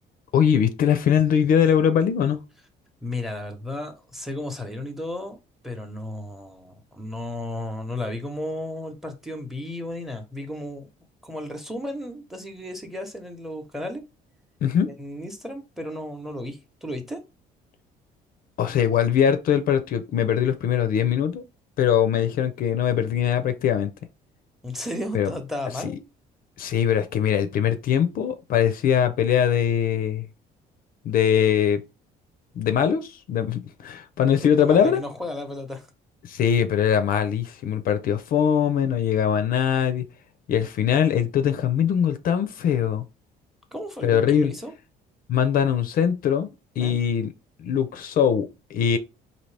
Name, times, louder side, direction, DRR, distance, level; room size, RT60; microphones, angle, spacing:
voice 1, 0.3-2.4 14.6-14.9 18.6-21.4 21.8-23.9 25.1-25.3 25.8-26.0 26.6-30.3 31.0-31.8 32.6-35.0 36.2-40.0 40.5-43.0 44.0-44.5 45.3-46.5 46.8-47.3 47.6-49.0, left 8 dB, 55° left, 0.5 m, -22 dB
voice 2, 3.0-5.4 5.6-10.9 11.2-14.0 14.8-17.2 24.6-25.9 34.4-35.9 43.7-44.7 46.8-47.0, left 1 dB, ahead, 0.8 m, -34 dB
4.1 x 2.7 x 3.3 m
cardioid pair, 110°, 17 cm